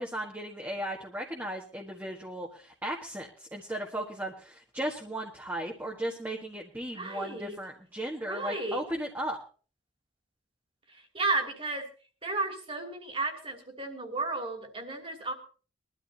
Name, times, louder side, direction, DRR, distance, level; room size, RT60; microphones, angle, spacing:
voice 1, 0.0-9.4, right 1 dB, 10° right, -2 dB, 1.7 m, -36 dB
voice 2, 6.9-7.6 8.3-8.8 11.1-11.8 12.2-15.3, right 3 dB, 30° right, 3 dB, 2.9 m, -33 dB
22.0 x 13.0 x 2.9 m, 0.38 s
head